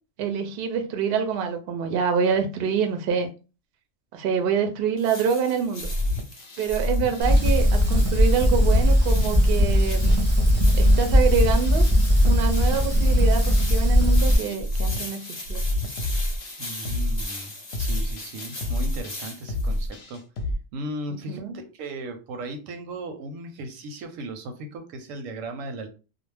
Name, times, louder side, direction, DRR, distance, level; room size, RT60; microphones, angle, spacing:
voice 1, 0.2-3.3 4.1-5.9 6.6-10.1 10.7-11.8 12.2-15.2 15.5-15.6 21.1-21.6, right 6 dB, 60° right, 0.6 m, -26 dB
sound 1, 5.0-19.9, left 2 dB, 30° left, 0.6 m, -40 dB
sound 2, 5.8-20.5, left 1 dB, 65° left, 0.8 m, -29 dB
Fire, 7.2-14.4, equal, 20° right, 0.4 m, -19 dB
voice 2, 16.6-17.5 17.8-20.2 20.7-25.9, right 2 dB, 85° right, 1.0 m, -36 dB
2.4 x 2.0 x 3.2 m
omnidirectional pair, 1.3 m